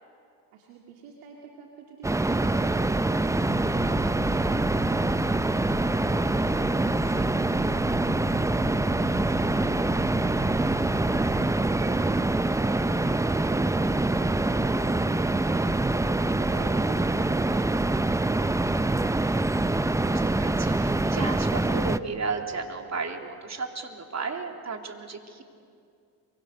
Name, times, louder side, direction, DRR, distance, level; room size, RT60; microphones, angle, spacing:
voice 1, 0.5-18.9, right 7 dB, 80° right, 0 dB, 2.6 m, -47 dB
sound 1, 2.0-22.0, right 2 dB, 5° right, 0.6 m, -25 dB
sound 2, 3.4-11.5, left 8 dB, 55° left, 1.5 m, -41 dB
voice 2, 19.7-25.4, right 4 dB, 35° right, 3 dB, 3.3 m, -34 dB
27.5 x 24.0 x 6.6 m, 2.4 s
supercardioid pair, 70°, 49 cm